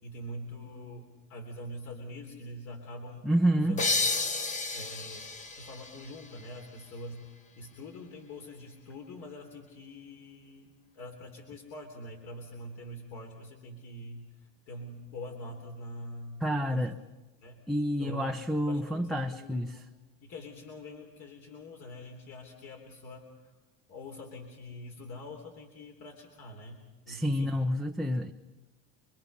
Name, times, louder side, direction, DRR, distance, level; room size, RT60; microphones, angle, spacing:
voice 1, 0.0-3.8 4.7-7.3 7.6-14.3 14.7-16.4 16.7-16.9 17.4-17.6 18.0-18.3 18.7-19.8 20.2-23.3 23.9-27.6, left 1 dB, 55° left, 3.6 m, -44 dB
voice 2, 3.2-3.8 16.4-16.9 17.7-19.8 27.1-28.3, equal, ahead, 0.7 m, -28 dB
sound 1, 3.8-7.2, left 3 dB, 25° left, 1.2 m, -32 dB
27.5 x 21.5 x 5.6 m
cardioid pair, 135°, 31 cm